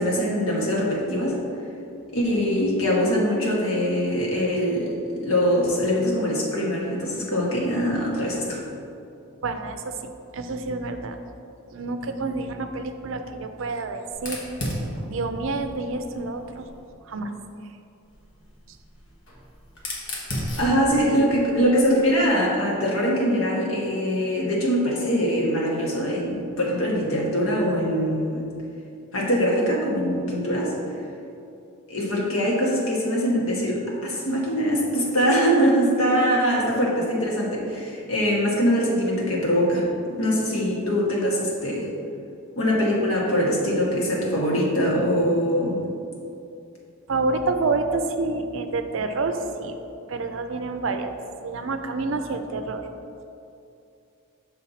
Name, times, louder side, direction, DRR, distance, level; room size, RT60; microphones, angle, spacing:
voice 1, 0.0-1.4 2.1-8.6 20.6-28.5 29.1-30.7 31.9-39.8 40.2-41.9 42.6-45.8, equal, 75° left, -3 dB, 1.5 m, -23 dB
voice 2, 9.4-9.9 10.3-11.2 11.7-14.4 15.1-16.7 17.1-17.3 47.1-49.8 50.1-51.2 51.4-52.9, right 3 dB, 65° right, 7 dB, 0.5 m, -28 dB
Fire, 14.1-16.9 18.0-22.3, left 1 dB, 60° left, 1.2 m, -35 dB
6.5 x 5.7 x 4.0 m, 2.6 s
head